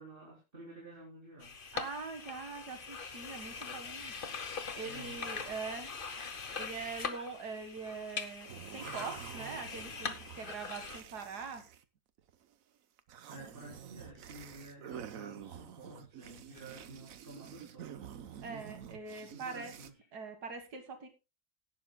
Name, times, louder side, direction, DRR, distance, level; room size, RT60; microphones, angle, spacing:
voice 1, 0.0-1.5 4.8-5.2 13.3-18.1 19.3-20.0, right 2 dB, 35° right, -6 dB, 4.1 m, -51 dB
sound 1, 1.4-11.0, left 5 dB, 40° left, 1.1 m, -42 dB
voice 2, 1.7-4.1 4.7-5.9 6.5-11.6 18.4-19.7 20.1-21.1, right 4 dB, 85° right, 6 dB, 2.2 m, -43 dB
sound 2, 8.5-11.8 12.2-12.5 13.0-19.9, right 9 dB, 65° right, 1.2 m, -48 dB
17.5 x 12.0 x 2.2 m, 0.27 s
omnidirectional pair, 1.7 m